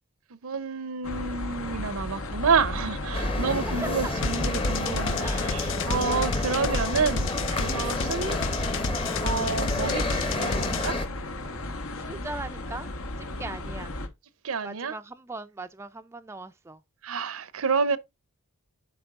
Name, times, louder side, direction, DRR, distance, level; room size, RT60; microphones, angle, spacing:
voice 1, 0.4-8.4 9.2-11.0 14.4-15.0 17.0-18.0, right 5 dB, 75° right, 0.6 m, -29 dB
sound 1, 1.0-14.1, left 1 dB, 80° left, 1.3 m, -35 dB
sound 2, 3.1-11.1, left 2 dB, 25° left, 0.9 m, -30 dB
voice 2, 3.1-4.2 4.8-4.9 5.2-5.5 11.9-12.9 13.2-13.9 14.6-16.8, right 2 dB, 10° right, 0.3 m, -39 dB
sound 3, 4.2-10.9, left 4 dB, 60° left, 0.6 m, -32 dB
11.5 x 4.4 x 2.4 m
head